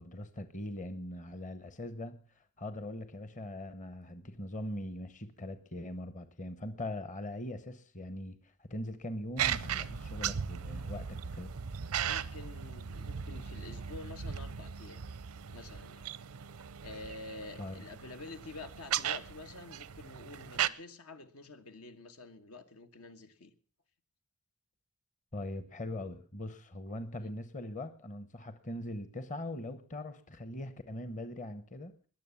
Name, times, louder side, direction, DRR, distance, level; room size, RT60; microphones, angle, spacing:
voice 1, 0.0-2.2 2.6-11.5 17.6-17.8 25.3-32.1, left 1 dB, 35° left, 1.0 m, -41 dB
sound 1, 9.4-20.7, right 8 dB, 90° right, 0.6 m, -37 dB
voice 2, 12.0-15.0 15.5-16.0 16.8-23.5 27.2-27.3, left 3 dB, 80° left, 1.5 m, -48 dB
21.0 x 7.3 x 7.1 m
head